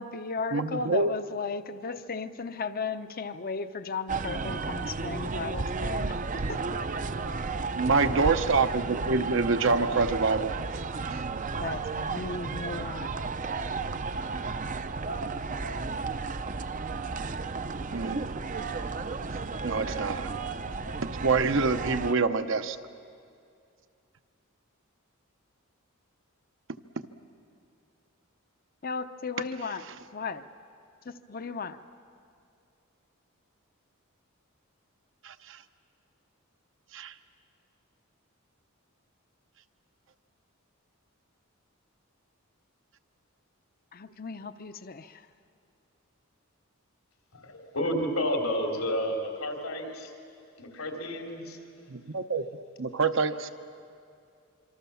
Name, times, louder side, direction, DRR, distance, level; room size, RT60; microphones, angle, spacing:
voice 1, 0.0-6.2 6.5-6.6 11.6-13.1 28.8-29.8 30.1-30.5 31.1-31.8 43.9-45.2, left 4 dB, 45° left, 10 dB, 0.7 m, -35 dB
voice 2, 0.5-1.1 7.7-10.5 11.1-11.2 17.9-18.3 19.6-20.3 21.0-22.8 27.0-27.1 35.2-35.6 36.9-37.1 51.9-53.5, right 4 dB, 60° right, 9 dB, 0.9 m, -26 dB
sound 1, 4.1-22.1, right 4 dB, 40° right, 0.6 m, -33 dB
voice 3, 47.3-50.1 50.6-51.6, equal, 90° left, 2 dB, 3.5 m, -31 dB
26.5 x 24.5 x 7.1 m, 2.4 s
head